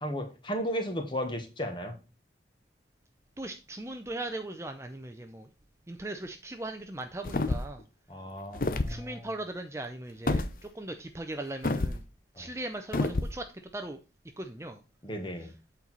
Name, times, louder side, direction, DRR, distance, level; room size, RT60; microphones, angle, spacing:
voice 1, 0.0-1.9 8.1-9.3 12.4-12.5 15.0-15.5, equal, 25° left, 1.3 m, -35 dB
voice 2, 3.4-5.5 5.9-7.9 8.9-12.0 12.4-13.5 13.7-14.0 14.4-14.8, right 2 dB, 15° right, 0.5 m, -39 dB
sound 1, 7.2-7.8 8.5-9.0 10.3-10.5 11.6-12.0 12.9-13.3, left 2 dB, 50° left, 0.6 m, -28 dB
8.3 x 4.6 x 4.1 m
head